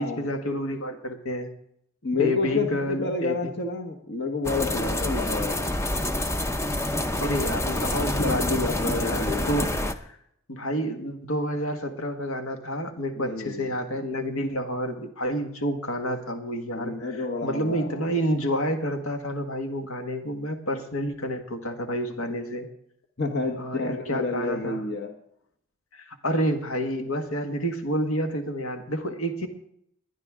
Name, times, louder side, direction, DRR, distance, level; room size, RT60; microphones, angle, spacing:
voice 1, 0.0-1.5 2.1-3.5 7.2-10.2 10.5-22.7 23.6-24.8 25.9-29.5, equal, 75° left, 5 dB, 1.6 m, -29 dB
voice 2, 2.0-5.6 8.0-9.6 13.1-13.7 16.7-18.0 23.2-25.1, left 3 dB, 50° left, 3 dB, 1.2 m, -29 dB
sound 1, 4.4-9.9, left 1 dB, 10° left, 0.5 m, -27 dB
20.5 x 11.0 x 3.7 m, 0.72 s
head